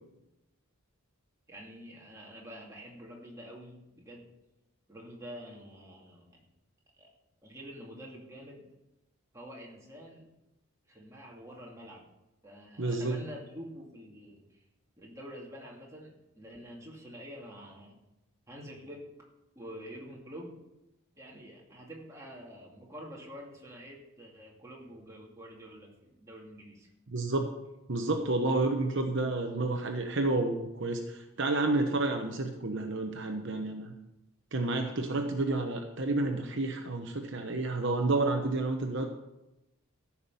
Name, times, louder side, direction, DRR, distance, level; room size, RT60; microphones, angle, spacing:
voice 1, 1.5-4.3 4.9-6.4 7.0-7.1 7.4-8.7 9.3-10.3 10.9-12.0 12.4-14.6 15.0-18.0 18.5-19.1 19.6-20.6 21.2-26.9 35.5-35.6, equal, 15° right, -3 dB, 2.4 m, -47 dB
voice 2, 12.8-13.2 27.1-27.5 27.9-33.9 34.5-39.1, right 2 dB, 55° right, 4 dB, 1.0 m, -30 dB
14.0 x 5.9 x 7.0 m, 0.92 s
head